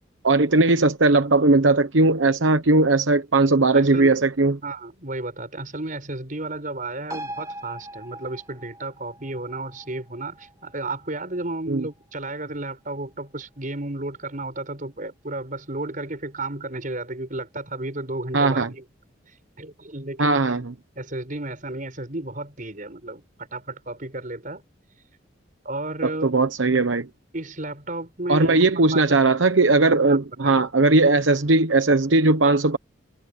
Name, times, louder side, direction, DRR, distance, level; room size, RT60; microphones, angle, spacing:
voice 1, 0.2-4.6 11.7-11.8 18.3-18.7 20.2-20.6 26.0-27.1 28.3-32.8, right 3 dB, 75° right, 1.1 m, -18 dB
voice 2, 3.7-4.1 4.6-18.8 19.3-20.4 21.0-23.3 23.5-24.6 25.6-26.4 27.3-29.2 30.1-30.2 30.4-30.7, right 2 dB, 45° right, 5.6 m, -33 dB
sound 1, 7.1-14.1 14.4-14.5, right 1 dB, 15° right, 2.5 m, -42 dB
head